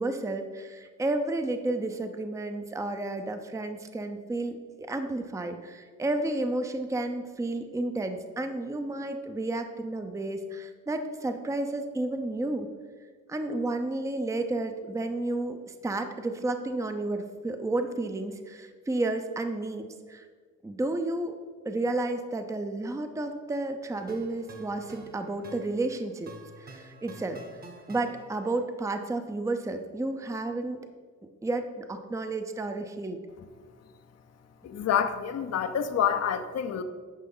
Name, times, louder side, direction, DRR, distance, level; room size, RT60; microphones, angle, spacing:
voice 1, 0.0-12.7 13.3-20.3 20.6-21.4 21.6-26.3 26.6-27.4 27.9-30.8 31.4-33.2, right 2 dB, 10° right, 7 dB, 0.6 m, -31 dB
sound 1, 23.9-28.6, right 2 dB, 30° right, 1.1 m, -49 dB
voice 2, 34.6-36.8, left 8 dB, 55° left, 9 dB, 0.7 m, -27 dB
10.5 x 5.1 x 3.8 m, 1.5 s
cardioid pair, 90°, 30 cm